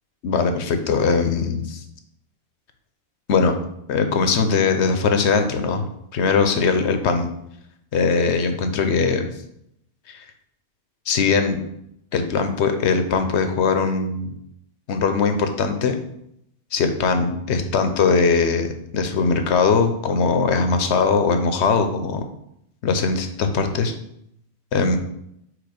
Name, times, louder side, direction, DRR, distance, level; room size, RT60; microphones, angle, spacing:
voice 1, 0.2-1.8 3.3-3.6 3.9-5.9 6.1-7.3 7.9-9.3 10.1-10.2 11.1-11.6 12.1-14.3 14.9-16.0 16.7-18.7 18.9-22.2 22.8-23.9 24.7-25.0, left 5 dB, 80° left, 7 dB, 1.0 m, -20 dB
4.9 x 4.1 x 5.1 m, 0.77 s
omnidirectional pair, 1.1 m